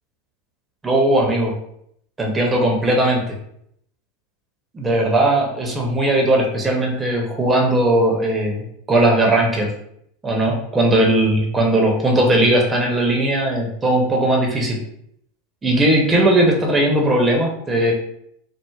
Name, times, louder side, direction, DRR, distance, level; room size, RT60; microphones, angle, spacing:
voice 1, 0.8-1.5 2.2-3.3 4.7-8.6 8.9-9.7 10.2-14.8 15.6-17.9, right 1 dB, 20° right, 0 dB, 0.6 m, -18 dB
3.2 x 2.1 x 2.2 m, 0.71 s
figure-of-eight pair, 85°, 0 cm